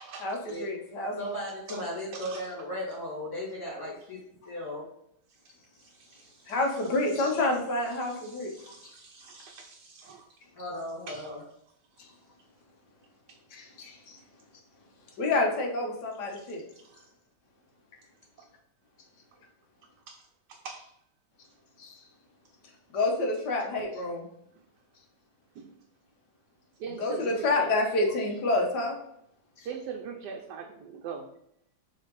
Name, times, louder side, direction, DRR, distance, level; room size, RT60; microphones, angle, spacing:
voice 1, 0.2-1.2 6.5-8.5 13.5-14.2 15.2-16.6 21.8-21.9 22.9-24.3 27.0-29.0, left 2 dB, 70° left, 1 dB, 1.7 m, -28 dB
voice 2, 1.2-4.2 4.4-4.8 10.5-11.4, equal, 10° left, -9 dB, 2.5 m, -36 dB
voice 3, 5.8-6.8 7.9-10.3 11.1-11.3 16.8-17.0 18.4-18.5 20.1-20.2 20.5-20.9 25.6-25.7 26.8-27.7 29.6-31.2, right 6 dB, 75° right, 2 dB, 1.2 m, -42 dB
6.3 x 3.7 x 4.0 m, 0.73 s
omnidirectional pair, 1.9 m